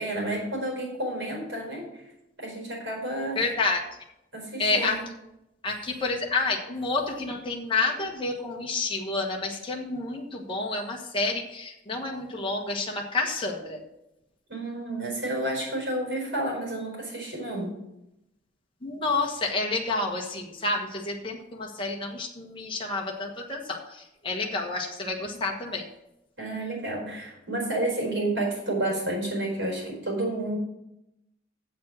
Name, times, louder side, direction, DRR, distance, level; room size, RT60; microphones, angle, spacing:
voice 1, 0.0-1.9 2.4-3.4 4.3-4.9 14.5-17.8 26.4-30.6, right 1 dB, 65° right, -1 dB, 4.5 m, -30 dB
voice 2, 3.3-3.8 4.6-5.0 5.6-13.8 18.8-25.9, left 3 dB, 25° left, 0 dB, 1.3 m, -29 dB
7.6 x 7.4 x 7.4 m, 0.87 s
head